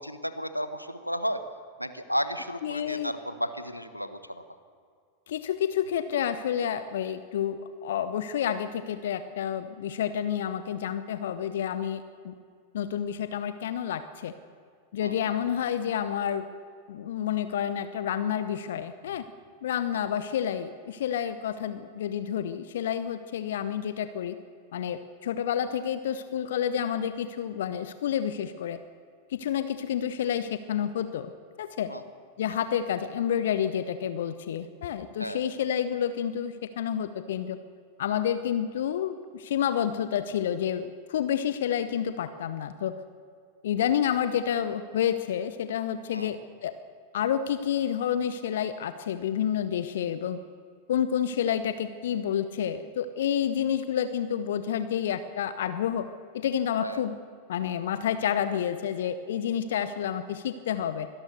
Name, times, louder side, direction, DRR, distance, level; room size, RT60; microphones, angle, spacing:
voice 1, 0.0-1.4 1.8-4.4 15.0-15.1 19.9-20.0 31.9-32.0 32.5-32.6 35.2-35.4 46.1-46.4 56.8-57.0, equal, 90° left, 10 dB, 1.3 m, -33 dB
voice 2, 2.6-3.1 5.3-12.3 12.7-14.3 14.9-16.4 16.9-19.2 19.6-24.4 24.7-28.8 29.3-31.3 31.6-31.9 32.4-37.6 38.0-42.9 43.6-46.7 47.1-50.4 50.9-56.1 56.3-57.2 57.5-61.1, left 9 dB, 60° left, 12 dB, 0.9 m, -29 dB
24.5 x 18.0 x 6.7 m, 2.3 s
figure-of-eight pair, 90°, 0 cm